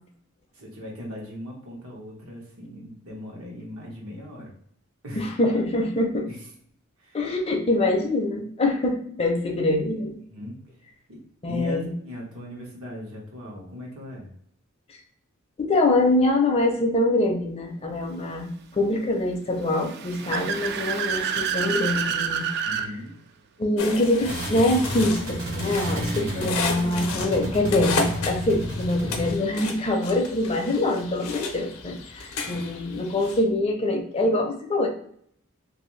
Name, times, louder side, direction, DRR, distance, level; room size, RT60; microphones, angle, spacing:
voice 1, 0.5-4.5 5.0-5.3 6.3-6.5 7.0-7.2 10.3-10.6 11.1-11.2 11.5-14.3 22.6-23.1 26.1-26.6 32.4-32.6, equal, 85° right, -2 dB, 1.1 m, -38 dB
voice 2, 5.2-6.3 7.1-10.2 11.4-11.9 15.6-22.7 23.6-34.9, left 2 dB, 30° left, 3 dB, 0.5 m, -24 dB
Car / Accelerating revving vroom, 19.7-22.9, right 7 dB, 50° right, 0.3 m, -28 dB
sound 1, 23.8-33.4, left 3 dB, 75° left, 0.6 m, -33 dB
sound 2, 24.2-29.3, equal, 65° right, 1.4 m, -31 dB
2.6 x 2.6 x 3.1 m, 0.63 s
head